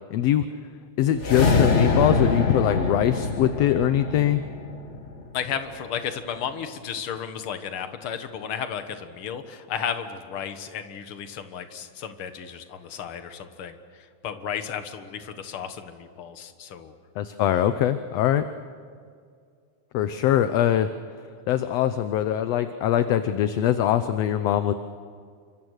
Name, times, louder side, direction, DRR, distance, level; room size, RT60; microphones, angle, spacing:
voice 1, 0.1-0.5 1.0-4.4 17.2-18.4 19.9-20.9 21.5-24.7, left 11 dB, 70° left, 10 dB, 1.7 m, -22 dB
sound 1, 1.1-5.5, left 3 dB, 35° left, 1.2 m, -24 dB
voice 2, 5.3-16.9, left 8 dB, 55° left, 8 dB, 2.0 m, -33 dB
29.0 x 25.5 x 6.5 m, 2.2 s
omnidirectional pair, 3.4 m